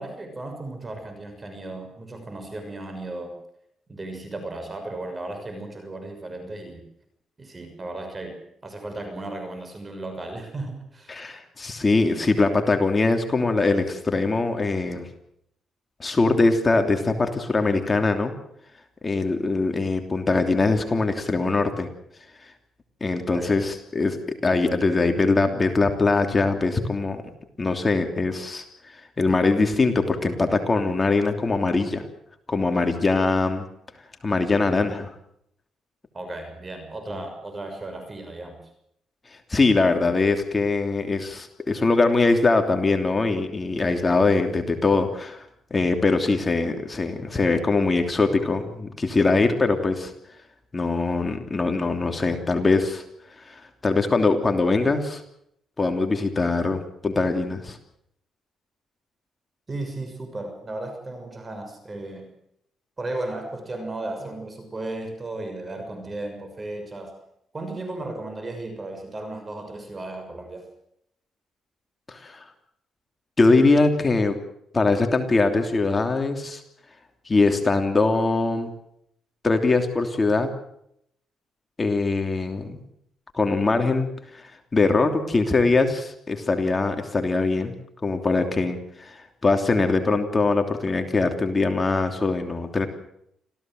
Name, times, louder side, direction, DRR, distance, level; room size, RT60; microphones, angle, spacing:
voice 1, 0.0-3.3 3.9-6.8 7.4-8.4 8.6-11.2 23.3-23.5 36.1-38.6 59.7-62.3 63.0-67.1 67.5-70.7, right 2 dB, 25° right, 6 dB, 6.2 m, -35 dB
voice 2, 11.1-15.1 16.0-18.3 19.0-21.9 22.4-22.5 23.0-27.2 27.6-32.0 32.5-33.6 34.2-35.1 39.5-45.4 45.7-50.1 50.7-53.0 53.4-55.2 55.8-57.8 72.1-72.5 73.4-74.4 74.7-76.6 77.2-78.7 79.4-80.5 81.8-82.8 83.3-87.7 88.0-92.9, left 3 dB, 25° left, 5 dB, 3.0 m, -22 dB
26.5 x 16.5 x 7.8 m, 0.75 s
cardioid pair, 90°, 0 cm